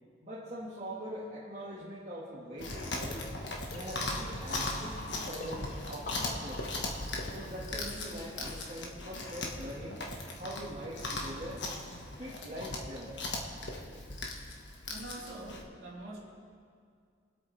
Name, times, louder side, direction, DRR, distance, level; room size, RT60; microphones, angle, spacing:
voice 1, 0.2-3.3 3.7-6.7 7.2-10.0 10.4-11.7 12.2-13.2, equal, 35° right, -7 dB, 1.8 m, -43 dB
Chewing mastication, 2.6-15.6, left 2 dB, 60° left, 1.4 m, -39 dB
sound 1, 3.7-9.3, left 2 dB, 45° left, 0.8 m, -46 dB
voice 2, 14.9-16.2, right 1 dB, 65° right, -10 dB, 3.1 m, -44 dB
24.0 x 8.4 x 3.4 m, 2.2 s
head